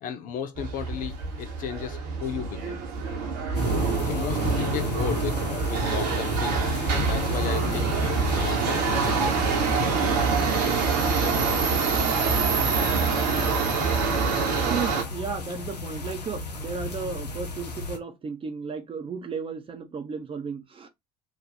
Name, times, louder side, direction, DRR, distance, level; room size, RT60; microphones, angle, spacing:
voice 1, 0.0-2.8 4.0-9.5, left 8 dB, 40° left, 0.6 m, -35 dB
Subway metro underground, 0.6-15.0, right 4 dB, 60° right, 1.2 m, -25 dB
sound 1, 3.5-18.0, left 3 dB, 80° left, 0.7 m, -34 dB
voice 2, 14.7-20.9, right 5 dB, 25° right, 1.0 m, -34 dB
3.2 x 2.5 x 4.1 m
figure-of-eight pair, 65°, 21 cm